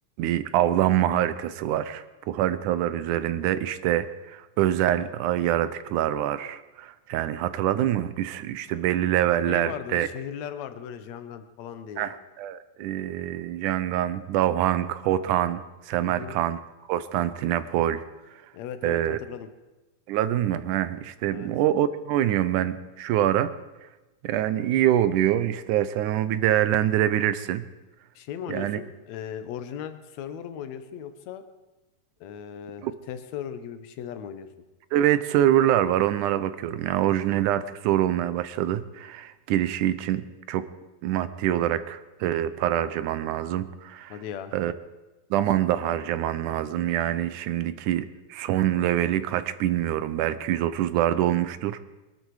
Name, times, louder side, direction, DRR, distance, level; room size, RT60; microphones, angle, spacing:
voice 1, 0.2-10.1 12.0-16.6 16.9-18.0 18.8-19.2 20.1-23.5 24.2-27.6 28.5-28.8 32.8-32.9 34.9-40.7 41.0-44.1 44.5-44.7 45.3-51.8, right 12 dB, 80° right, 14 dB, 2.2 m, -25 dB
voice 2, 9.5-12.1 16.0-16.4 18.5-19.5 21.3-21.5 28.2-31.4 32.2-34.5 44.1-44.5, left 9 dB, 70° left, 10 dB, 2.1 m, -37 dB
22.5 x 12.5 x 4.8 m, 1.1 s
omnidirectional pair, 3.6 m